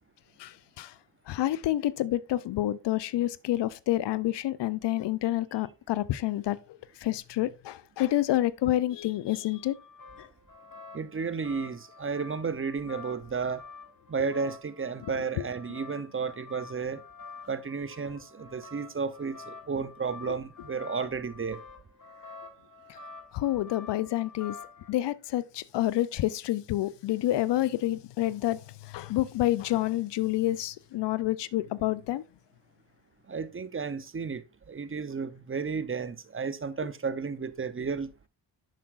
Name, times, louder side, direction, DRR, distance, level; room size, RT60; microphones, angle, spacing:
voice 1, 0.4-0.9 1.3-6.6 7.0-9.8 10.2-10.3 15.4-15.5 23.3-24.6 24.9-32.2, left 14 dB, 65° left, 0.5 m, -28 dB
sound 1, 9.5-24.9, left 4 dB, 45° left, 2.0 m, -48 dB
voice 2, 10.9-13.6 14.1-17.0 17.4-21.6 33.3-38.1, right 5 dB, 30° right, 0.7 m, -33 dB
7.3 x 5.9 x 2.4 m
supercardioid pair, 45°, 45 cm